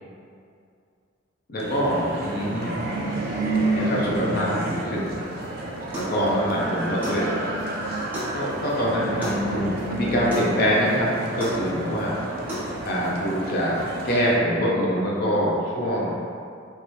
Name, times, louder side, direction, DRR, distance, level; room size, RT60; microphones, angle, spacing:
voice 1, 1.5-2.8 3.7-5.1 6.0-7.4 8.3-11.1 11.4-12.2 12.8-16.2, equal, 50° left, -5 dB, 0.5 m, -24 dB
sound 1, 1.6-14.4, right 2 dB, 50° right, 0.4 m, -30 dB
sound 2, 5.4-5.5 5.9-6.2 6.5-6.6 7.0-7.2 7.6-7.7 8.1-8.3 8.7-8.8 9.2-9.4 9.8-9.9 10.3-10.5 10.9-11.0 11.4-11.6 12.0-12.1 12.5-12.7 13.0-13.1, equal, 10° right, 1.0 m, -33 dB
3.1 x 2.8 x 3.1 m, 2.4 s
head